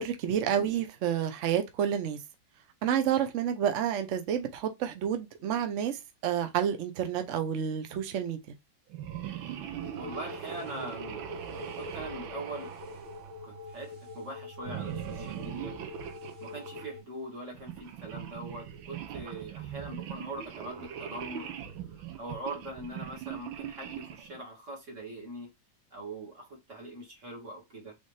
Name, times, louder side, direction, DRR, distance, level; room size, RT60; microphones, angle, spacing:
voice 1, 0.0-2.2 2.8-6.0 6.2-8.4, right 9 dB, 60° right, 0.8 m, -29 dB
sound 1, 8.9-13.7 14.6-16.9 17.5-24.4, right 9 dB, 90° right, 1.5 m, -40 dB
sound 2, 9.8-17.0, left 4 dB, 15° right, 2.3 m, -46 dB
voice 2, 10.0-12.7 13.4-15.8 16.4-21.5 21.9-25.5 25.9-28.0, right 1 dB, 40° right, 2.0 m, -42 dB
4.3 x 3.6 x 3.1 m
omnidirectional pair, 2.1 m